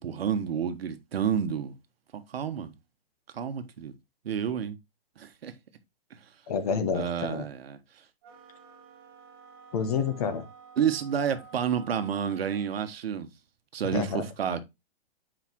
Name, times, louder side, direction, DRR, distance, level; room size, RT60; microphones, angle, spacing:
voice 1, 0.0-1.7 2.1-2.7 3.3-3.9 4.2-4.8 5.2-5.5 6.9-7.8 10.8-13.3 13.7-14.6, right 8 dB, 75° right, 1.2 m, -30 dB
voice 2, 6.5-7.4 9.7-10.4 13.9-14.3, left 6 dB, 40° left, 1.1 m, -29 dB
sound 1, 8.2-12.9, right 6 dB, 25° right, 0.9 m, -51 dB
8.2 x 4.9 x 2.9 m
hypercardioid pair, 170°, 30 cm